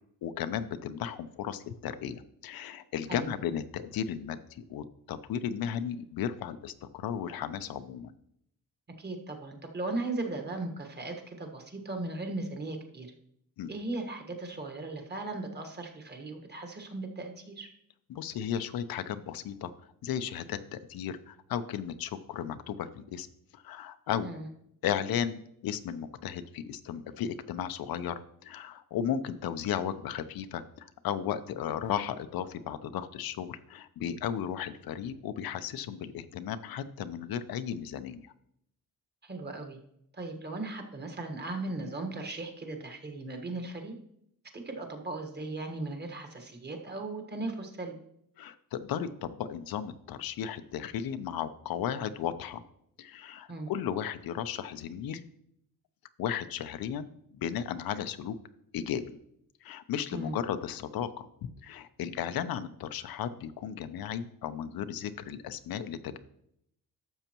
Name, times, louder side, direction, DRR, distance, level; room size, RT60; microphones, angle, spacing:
voice 1, 0.2-8.1 13.6-13.7 18.1-19.7 20.0-23.3 23.5-24.3 24.8-38.3 48.4-52.6 53.0-55.3 56.2-58.4 58.7-59.2 59.6-61.3 61.6-66.2, left 9 dB, 85° left, 11 dB, 0.7 m, -35 dB
voice 2, 9.0-13.1 13.7-17.7 24.2-24.5 39.2-39.8 40.1-43.9 44.5-47.9 53.5-53.7 60.1-60.4, right 2 dB, 30° right, 4 dB, 1.4 m, -37 dB
12.0 x 7.0 x 3.0 m, 0.73 s
wide cardioid pair, 140°, 34 cm